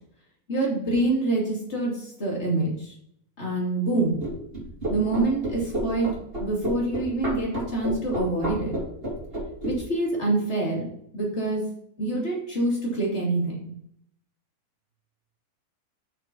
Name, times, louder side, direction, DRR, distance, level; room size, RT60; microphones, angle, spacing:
voice 1, 0.5-2.9 3.4-4.1 4.9-6.1 6.4-8.7 9.6-10.9 11.1-11.6 12.0-13.7, right 2 dB, 45° left, -3 dB, 3.0 m, -26 dB
sound 1, 4.2-9.7, right 1 dB, 35° right, 3.3 m, -30 dB
6.6 x 6.1 x 5.8 m, 0.71 s
omnidirectional pair, 1.7 m